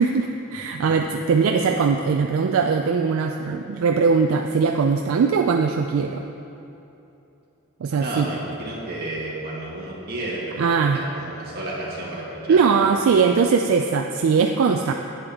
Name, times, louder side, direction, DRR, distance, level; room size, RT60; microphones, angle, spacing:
voice 1, 0.0-6.2 7.8-8.3 10.6-11.0 12.5-14.9, right 5 dB, 75° right, 4 dB, 0.4 m, -20 dB
voice 2, 8.0-12.7 13.1-13.2, right 1 dB, 50° right, -5 dB, 1.9 m, -32 dB
8.6 x 8.6 x 3.5 m, 2.9 s
head